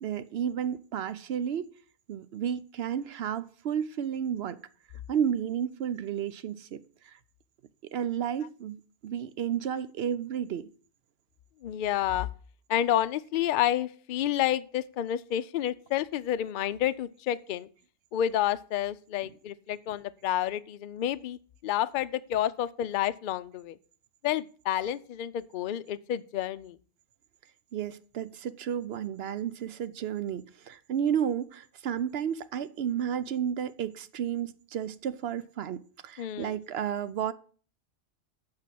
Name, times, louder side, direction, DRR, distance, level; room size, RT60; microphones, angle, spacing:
voice 1, 0.0-1.7 2.1-4.6 5.1-7.2 7.9-10.7 27.7-37.3, right 8 dB, 65° right, 0.8 m, -32 dB
voice 2, 11.6-12.3 12.7-17.7 18.1-21.4 21.6-23.8 24.2-26.8 36.2-36.6, left 11 dB, 60° left, 0.6 m, -29 dB
8.3 x 4.8 x 7.4 m
omnidirectional pair, 1.2 m